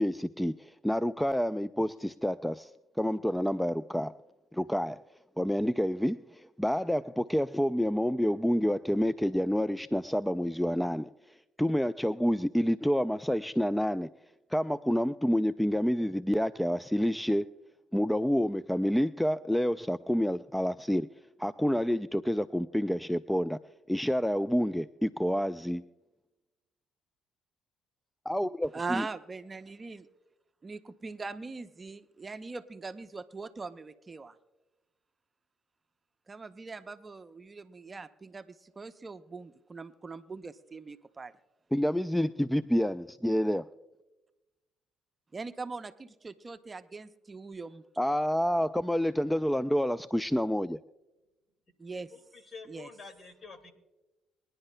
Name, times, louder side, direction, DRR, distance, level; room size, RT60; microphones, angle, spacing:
voice 1, 0.0-2.7 3.0-4.1 4.5-5.0 5.4-11.1 11.6-14.1 14.5-17.5 17.9-21.1 21.4-23.6 23.9-25.8 28.3-29.1 41.7-43.7 48.0-50.8, equal, 5° left, 14 dB, 0.4 m, -28 dB
voice 2, 28.7-30.0 30.6-34.4 36.3-41.3 45.3-47.8 51.8-52.1 52.7-52.9, right 4 dB, 30° right, 10 dB, 0.6 m, -41 dB
voice 3, 52.1-53.7, left 4 dB, 50° left, 7 dB, 2.1 m, -48 dB
22.0 x 10.5 x 2.2 m, 1.1 s
hypercardioid pair, 55°, 0 cm